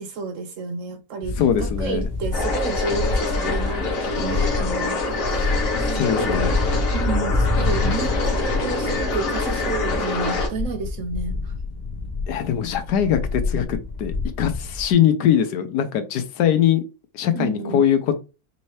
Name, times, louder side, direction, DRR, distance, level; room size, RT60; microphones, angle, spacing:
voice 1, 0.0-6.5 6.9-11.5 17.3-17.8, right 4 dB, 60° right, 0.9 m, -31 dB
sound 1, 1.2-14.9, left 3 dB, 35° left, 0.8 m, -27 dB
voice 2, 1.4-2.1 5.9-6.6 12.3-16.8 17.1-18.2, left 9 dB, 90° left, 1.3 m, -21 dB
sound 2, 2.3-10.5, left 3 dB, 55° left, 1.4 m, -26 dB
5.4 x 2.8 x 3.1 m
omnidirectional pair, 1.7 m